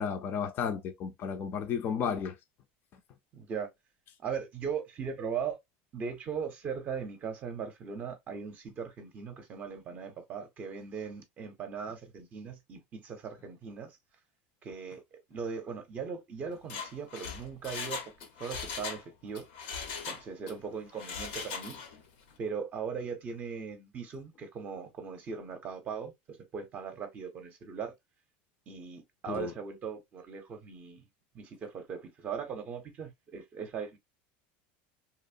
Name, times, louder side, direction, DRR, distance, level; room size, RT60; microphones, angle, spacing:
voice 1, 0.0-2.3 29.3-29.5, left 7 dB, 40° left, 0.4 m, -33 dB
voice 2, 3.3-3.7 4.2-5.6 5.9-13.9 14.6-18.0 18.4-19.5 20.1-21.8 22.4-26.1 26.5-27.9 28.7-31.0 31.3-34.0, right 6 dB, 35° right, 0.6 m, -39 dB
Mechanisms, 16.6-19.0 19.3-20.6 20.9-22.0 22.3-22.4, left 6 dB, 80° left, 0.8 m, -39 dB
2.9 x 2.0 x 2.5 m
supercardioid pair, 140°, 5 cm